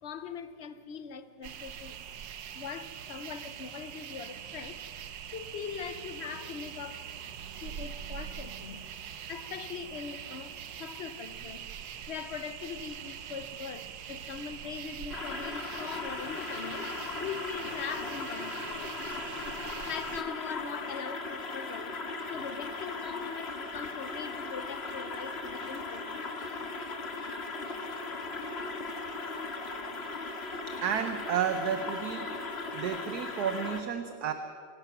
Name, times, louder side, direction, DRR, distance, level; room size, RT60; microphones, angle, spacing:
voice 1, 0.0-2.0 2.5-4.8 5.3-7.1 7.6-8.8 9.3-11.7 12.1-16.9 17.2-19.0 19.8-22.0 22.3-26.3, left 7 dB, 55° left, 0.8 m, -41 dB
sound 1, 1.4-20.2, right 8 dB, 90° right, 1.6 m, -43 dB
sound 2, 15.1-33.8, left 3 dB, 35° left, 1.6 m, -38 dB
voice 2, 30.7-32.4 32.7-34.3, right 8 dB, 65° right, 1.4 m, -32 dB
26.0 x 17.0 x 6.0 m
omnidirectional pair, 1.9 m